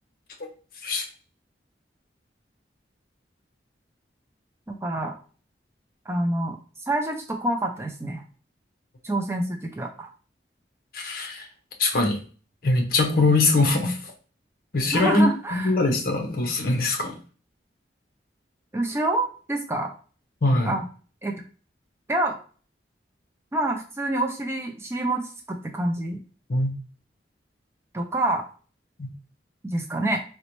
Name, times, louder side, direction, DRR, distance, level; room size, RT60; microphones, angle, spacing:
voice 1, 4.7-5.2 6.1-6.6 6.9-8.2 9.0-10.1 13.8-13.9 14.9-15.8 18.7-19.9 20.7-20.8 21.2-21.3 22.1-22.4 23.5-26.2 27.9-28.4 29.6-30.2, right 1 dB, 15° right, 3 dB, 0.4 m, -27 dB
voice 2, 10.9-11.5 11.8-12.2 12.6-14.0 14.7-15.3 15.5-17.2 20.4-20.8 26.5-26.7 29.0-29.1, left 2 dB, 55° left, 3 dB, 0.7 m, -22 dB
3.9 x 2.1 x 2.9 m, 0.38 s
head